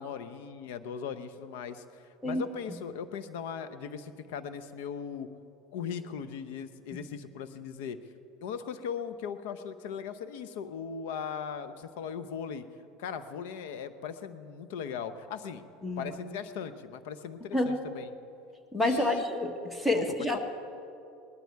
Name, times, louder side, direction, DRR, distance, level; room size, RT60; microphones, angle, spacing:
voice 1, 0.0-5.3 5.7-8.0 8.4-12.6 13.0-15.6 16.0-18.1 18.8-19.2 19.9-20.0 20.3-20.4, left 7 dB, 80° left, 13 dB, 0.8 m, -38 dB
voice 2, 17.5-17.8 18.7-20.4, left 1 dB, 10° left, 5 dB, 1.5 m, -28 dB
19.5 x 12.0 x 4.7 m, 2.6 s
supercardioid pair, 110°, 0 cm